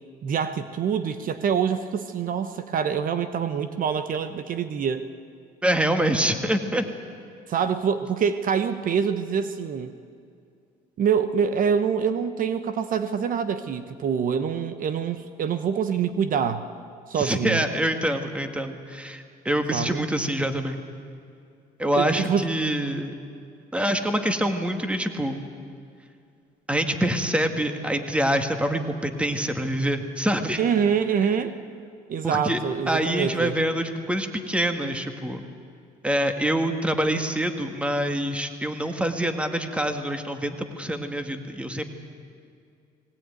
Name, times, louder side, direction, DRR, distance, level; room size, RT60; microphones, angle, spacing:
voice 1, 0.2-5.0 7.5-9.9 11.0-16.6 17.1-17.6 19.7-20.0 22.0-22.4 30.6-31.5 32.1-33.5, right 7 dB, 55° right, 10 dB, 1.0 m, -25 dB
voice 2, 5.6-6.8 17.1-20.8 21.8-23.1 23.7-25.4 26.7-30.6 32.2-32.6 32.9-35.4 36.0-41.8, right 1 dB, 5° right, 6 dB, 1.8 m, -25 dB
19.5 x 18.5 x 9.3 m, 2.3 s
cardioid pair, 110°, 17 cm